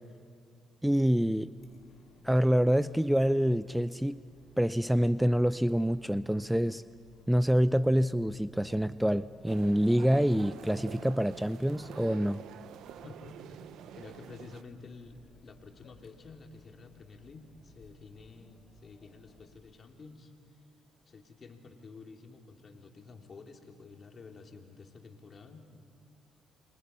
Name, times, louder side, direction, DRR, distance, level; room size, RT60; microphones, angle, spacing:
voice 1, 0.8-1.5 2.2-4.2 4.6-6.8 7.3-12.4, equal, 5° right, 15 dB, 0.5 m, -26 dB
Chatter, 1.6-19.5, left 3 dB, 65° left, 3.9 m, -62 dB
sound 1, 9.5-14.6, right 10 dB, 70° right, 0.7 m, -48 dB
voice 2, 13.0-20.6 21.1-25.7, left 4 dB, 45° left, 3 dB, 2.8 m, -51 dB
28.5 x 23.5 x 5.6 m, 2.2 s
hypercardioid pair, 55°, 0 cm